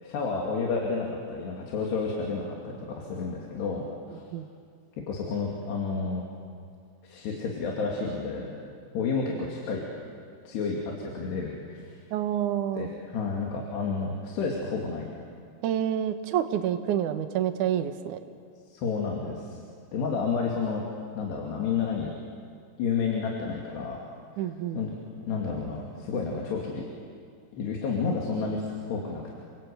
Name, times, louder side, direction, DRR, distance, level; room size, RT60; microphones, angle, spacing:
voice 1, 0.0-4.2 5.1-6.2 7.0-8.5 8.9-9.9 10.5-12.0 12.7-15.1 18.7-19.6 19.9-20.8 21.1-22.1 22.8-24.0 24.4-24.5 24.7-24.9 25.3-26.8 27.5-29.4, left 5 dB, 65° left, -1 dB, 4.5 m, -30 dB
voice 2, 12.1-12.9 15.6-18.2 24.4-24.8, right 10 dB, 70° right, 8 dB, 1.9 m, -28 dB
29.5 x 24.5 x 8.4 m, 2.3 s
omnidirectional pair, 5.3 m